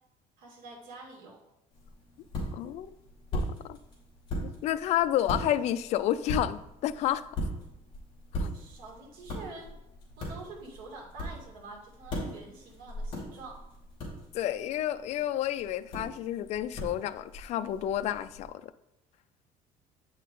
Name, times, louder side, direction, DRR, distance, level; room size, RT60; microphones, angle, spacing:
voice 1, 0.4-1.4 8.5-9.7 10.2-13.6, right 3 dB, 75° right, -1 dB, 2.4 m, -46 dB
sound 1, 1.7-18.5, equal, 35° left, 2.8 m, -39 dB
voice 2, 2.5-2.9 3.3-3.8 4.4-7.2 8.3-8.5 14.3-18.7, left 12 dB, 50° left, 13 dB, 0.4 m, -30 dB
8.4 x 5.4 x 3.8 m, 0.89 s
cardioid pair, 170°, 15 cm